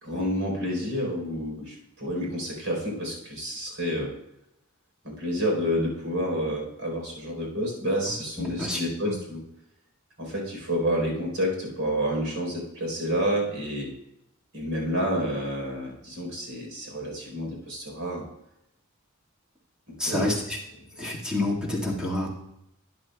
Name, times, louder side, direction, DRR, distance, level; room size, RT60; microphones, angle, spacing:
voice 1, 0.0-4.2 5.0-9.4 10.2-13.9 14.5-18.3 19.9-20.4, equal, 70° right, -1 dB, 3.9 m, -29 dB
voice 2, 8.6-9.1 20.0-20.6 21.0-22.3, left 1 dB, 5° right, -4 dB, 1.8 m, -28 dB
12.5 x 9.9 x 2.3 m, 0.83 s
head